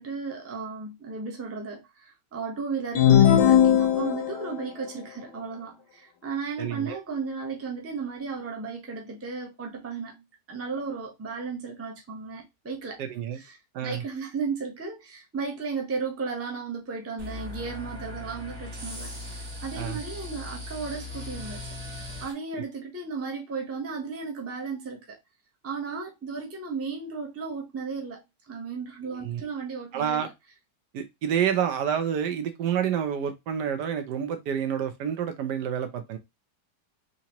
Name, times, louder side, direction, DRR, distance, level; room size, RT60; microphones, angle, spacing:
voice 1, 0.0-13.0 13.3-21.6 22.2-25.2 25.6-30.3, right 5 dB, 15° right, 0.5 m, -35 dB
sound 1, 3.0-4.5, left 10 dB, 80° left, 1.1 m, -18 dB
voice 2, 6.6-7.0 13.0-13.4 13.7-14.0 19.7-20.0 22.6-22.7 29.1-29.4 29.9-30.3 30.9-36.2, right 8 dB, 75° right, 1.3 m, -28 dB
sound 2, 17.2-22.3, left 1 dB, 40° right, 1.4 m, -38 dB
3.8 x 3.0 x 2.8 m
omnidirectional pair, 1.8 m